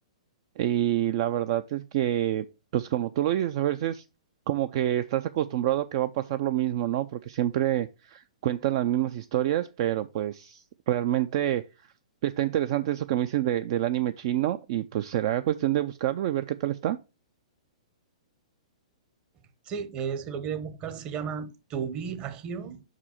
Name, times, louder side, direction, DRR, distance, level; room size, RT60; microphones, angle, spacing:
voice 1, 0.6-2.5 2.7-4.0 4.5-11.6 12.2-17.0, right 12 dB, 50° right, 0.4 m, -27 dB
voice 2, 19.7-22.8, right 7 dB, 30° right, 0.9 m, -34 dB
5.5 x 4.9 x 4.3 m
hypercardioid pair, 135°, 4 cm